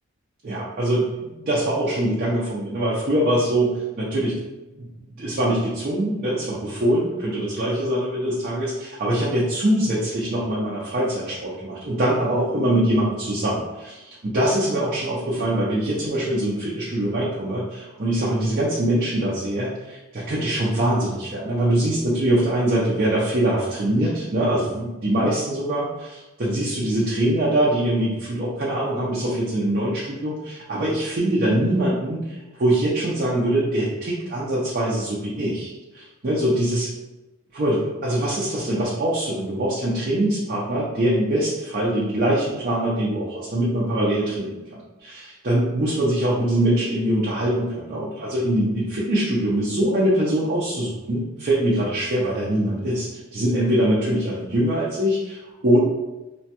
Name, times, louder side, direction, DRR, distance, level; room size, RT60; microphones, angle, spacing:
voice 1, 0.4-4.4 4.8-36.9 37.5-44.6 45.0-55.8, right 1 dB, 45° right, -6 dB, 0.6 m, -23 dB
2.9 x 2.2 x 2.8 m, 1.1 s
head